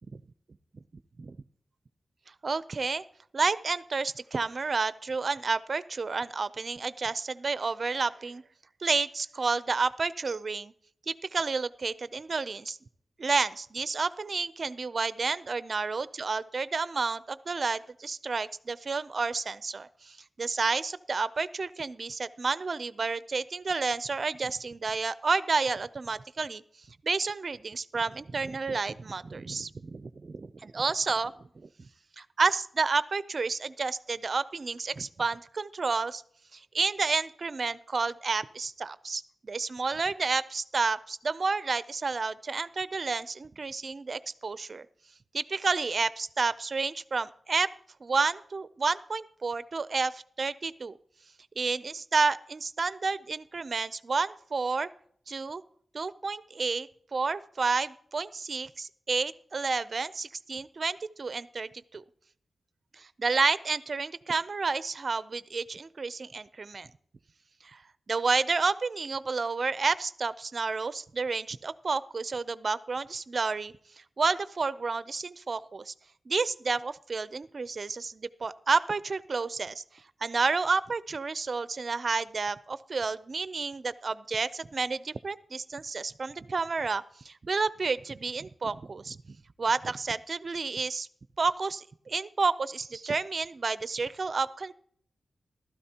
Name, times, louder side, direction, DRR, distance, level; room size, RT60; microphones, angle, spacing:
voice 1, 2.4-3.0 3.3-8.4 8.8-10.7 11.1-12.8 13.2-26.6 27.0-31.9 32.2-36.2 36.5-44.9 45.3-47.7 48.0-51.0 51.6-54.9 55.3-55.6 55.9-62.0 63.0-66.9 67.6-67.8 68.1-73.7 74.2-75.9 76.3-79.8 80.2-91.1 91.4-94.7, right 4 dB, 40° right, 15 dB, 0.5 m, -30 dB
15.0 x 13.0 x 2.9 m, 0.62 s
wide cardioid pair, 130°, 0 cm